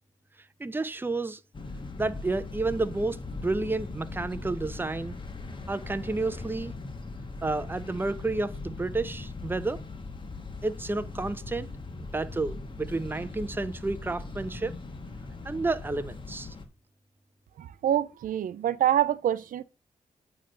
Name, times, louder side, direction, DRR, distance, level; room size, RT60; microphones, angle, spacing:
voice 1, 0.6-1.4 2.0-5.2 5.7-6.7 7.4-9.8 10.6-11.7 12.0-14.7 15.4-16.5, right 3 dB, 15° right, 0.6 m, -31 dB
sound 1, 1.5-16.6, left 3 dB, 35° left, 1.4 m, -40 dB
voice 2, 17.6-19.6, right 11 dB, 80° right, 0.5 m, -26 dB
8.6 x 3.4 x 5.2 m
cardioid pair, 75°, 14 cm